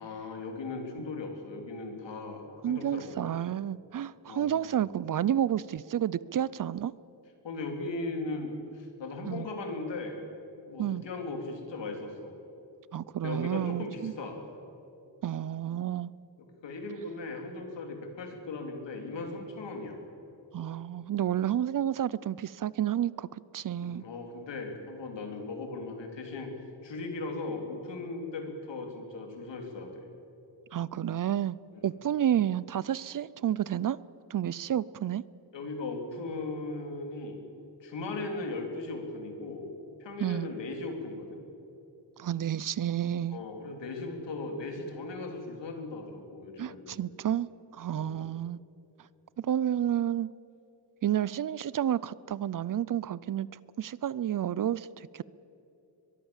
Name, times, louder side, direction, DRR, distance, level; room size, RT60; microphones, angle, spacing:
voice 1, 0.0-3.1 4.3-4.5 7.4-10.2 10.7-12.3 13.2-14.4 16.4-20.0 23.8-26.5 26.8-30.1 35.5-37.4 37.8-39.7 40.0-41.4 43.3-47.0 47.9-48.2, left 3 dB, 80° left, 3 dB, 3.8 m, -38 dB
voice 2, 2.6-6.9 9.3-9.5 10.8-11.0 12.9-14.1 15.2-16.1 20.5-24.0 30.7-31.6 31.8-34.0 34.3-35.2 40.2-40.5 42.2-43.4 46.6-47.5 47.7-48.6 49.4-50.3 51.0-53.5 53.8-55.2, right 10 dB, 50° right, 20 dB, 0.5 m, -30 dB
22.5 x 22.5 x 7.3 m, 3.0 s
wide cardioid pair, 165°, 43 cm